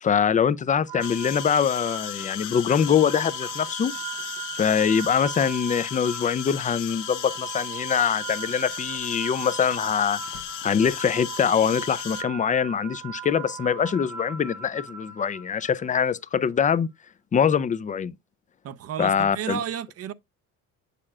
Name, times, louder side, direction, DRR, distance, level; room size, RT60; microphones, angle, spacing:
voice 1, 0.0-3.9 4.6-10.2 10.6-16.9 17.3-18.1 19.0-19.6, left 7 dB, 25° left, 0.4 m, -23 dB
sound 1, 0.9-16.0, right 8 dB, 85° right, 1.1 m, -39 dB
sound 2, 1.0-12.2, left 14 dB, 70° left, 0.8 m, -36 dB
voice 2, 18.6-20.1, right 9 dB, 45° right, 0.6 m, -32 dB
7.3 x 6.6 x 2.3 m
cardioid pair, 95°, 32 cm